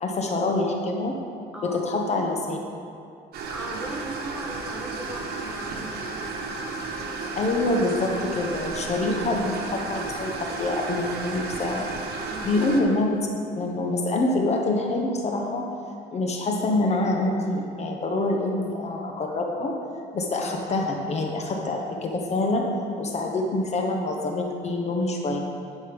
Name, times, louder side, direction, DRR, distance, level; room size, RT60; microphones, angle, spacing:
voice 1, 0.0-1.1 1.6-2.6 7.4-11.9 12.4-13.2 13.6-15.7 16.1-19.7 20.1-22.6 23.0-25.4, left 2 dB, 40° left, 1 dB, 1.1 m, -26 dB
sound 1, 3.3-12.8, right 3 dB, 65° right, 1.3 m, -33 dB
voice 2, 3.5-6.4 12.3-12.6 23.3-23.4, right 1 dB, 5° right, -1 dB, 1.2 m, -38 dB
11.0 x 5.3 x 5.3 m, 2.5 s
cardioid pair, 110°, 17 cm